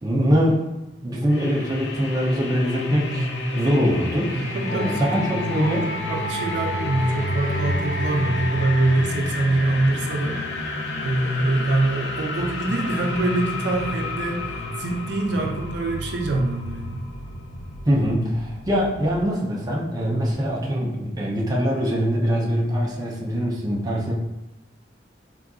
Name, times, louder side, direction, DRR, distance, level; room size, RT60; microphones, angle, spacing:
voice 1, 0.0-0.6 1.0-3.3 3.5-5.9 17.9-24.1, equal, 20° right, -4 dB, 0.5 m, -23 dB
sound 1, 1.3-19.2, left 1 dB, 80° left, 0.5 m, -30 dB
voice 2, 4.4-5.1 5.5-5.7 6.1-10.4 10.6-10.7 11.0-17.1, right 2 dB, 75° right, 1 dB, 0.5 m, -24 dB
Wind instrument woodwind instrument, 4.6-8.9, left 1 dB, 60° left, 1.0 m, -33 dB
3.6 x 2.4 x 2.3 m, 0.99 s
head